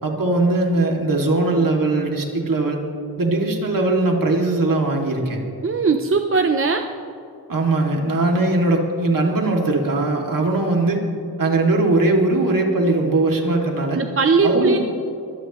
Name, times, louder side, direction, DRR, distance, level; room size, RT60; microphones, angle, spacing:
voice 1, 0.0-2.8 3.2-5.4 7.5-11.0 11.4-14.0 14.4-14.8, right 2 dB, 55° right, 1 dB, 2.5 m, -20 dB
voice 2, 5.6-6.9 13.9-14.8, right 4 dB, 35° right, 5 dB, 0.7 m, -19 dB
24.0 x 18.5 x 3.1 m, 2.7 s
wide cardioid pair, 130°, 39 cm